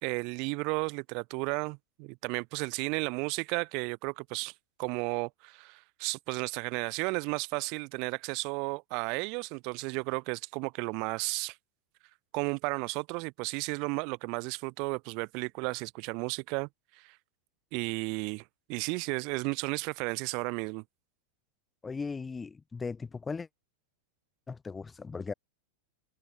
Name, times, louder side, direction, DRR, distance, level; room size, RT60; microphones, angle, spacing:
voice 1, 0.0-4.5 4.8-11.6 12.3-16.7 17.0-17.2 17.7-18.4 18.7-20.8, right 32 dB, 45° right, 4.6 m, -33 dB
voice 2, 21.8-23.5 24.5-25.3, left 4 dB, 10° left, 3.5 m, -37 dB
supercardioid pair, 155°, 0 cm